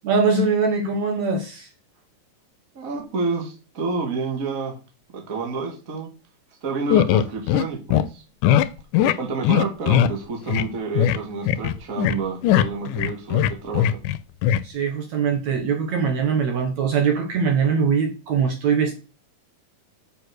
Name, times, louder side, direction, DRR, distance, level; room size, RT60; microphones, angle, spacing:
voice 1, 0.0-1.7 14.6-18.9, right 5 dB, 60° right, 4 dB, 2.5 m, -22 dB
voice 2, 2.7-4.7 5.1-6.1 6.6-8.2 9.0-14.0, right 4 dB, 30° right, 2 dB, 1.9 m, -29 dB
sound 1, 6.9-7.7 7.9-8.0 8.4-8.7 8.9-9.1 9.4-10.1 10.5-10.7 11.0-11.2 11.5-12.2 12.4-14.2 14.4-14.6, left 11 dB, 80° left, 2.0 m, -19 dB
7.0 x 6.8 x 6.5 m, 0.34 s
omnidirectional pair, 4.0 m